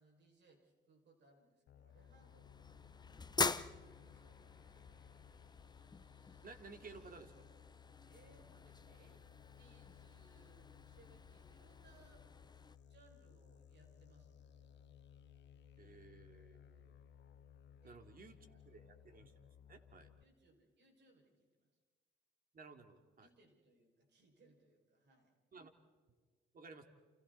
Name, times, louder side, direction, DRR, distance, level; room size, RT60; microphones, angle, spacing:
voice 1, 0.0-3.2 4.0-5.2 8.0-9.2 9.6-12.3 12.8-14.8 17.8-18.0 18.4-19.1 20.2-21.7 23.2-25.4, right 2 dB, 65° right, 2 dB, 6.4 m, -69 dB
sound 1, 1.7-20.2, left 8 dB, 65° left, 1.2 m, -61 dB
sound 2, 1.9-12.8, left 4 dB, 20° left, 0.9 m, -45 dB
voice 2, 6.4-7.4 15.8-16.9 17.8-18.3 18.6-19.3 19.7-20.1 22.5-23.3 25.5-25.7 26.5-26.8, right 4 dB, 50° right, 6 dB, 2.9 m, -56 dB
30.0 x 29.0 x 4.3 m, 1.5 s
cardioid pair, 75°, 19 cm